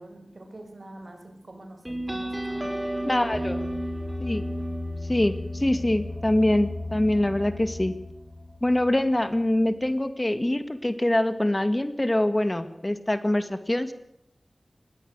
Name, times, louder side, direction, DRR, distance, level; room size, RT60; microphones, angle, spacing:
voice 1, 0.0-3.0, right 1 dB, 60° right, 6 dB, 5.8 m, -46 dB
sound 1, 1.8-9.0, equal, 5° right, 5.5 m, -33 dB
voice 2, 3.0-3.6 4.2-4.4 5.1-7.9 8.6-13.9, left 1 dB, 25° left, 11 dB, 1.9 m, -24 dB
20.5 x 16.5 x 8.1 m, 0.79 s
wide cardioid pair, 45°, 0 cm